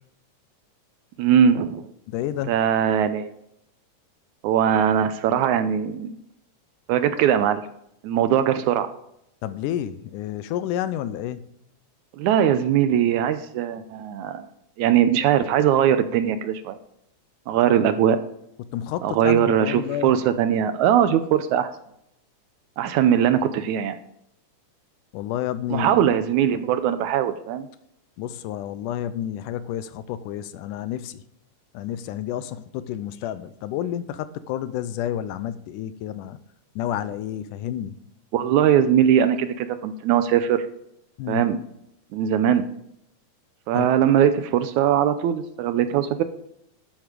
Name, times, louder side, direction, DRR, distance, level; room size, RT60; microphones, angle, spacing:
voice 1, 1.2-1.9 2.5-3.3 4.4-6.2 6.9-7.7 8.0-8.9 12.2-14.5 14.8-16.8 17.5-18.2 19.0-21.7 22.8-24.0 25.7-27.7 38.3-40.7 41.3-41.6 42.1-42.7 43.7-46.2, right 9 dB, 75° right, 1.9 m, -20 dB
voice 2, 2.1-2.5 9.4-11.4 18.7-20.1 25.1-26.0 28.2-31.2 31.7-36.4 36.8-38.0 41.2-41.4 43.7-43.9, left 11 dB, 85° left, 2.1 m, -30 dB
11.5 x 9.2 x 5.0 m
omnidirectional pair, 3.7 m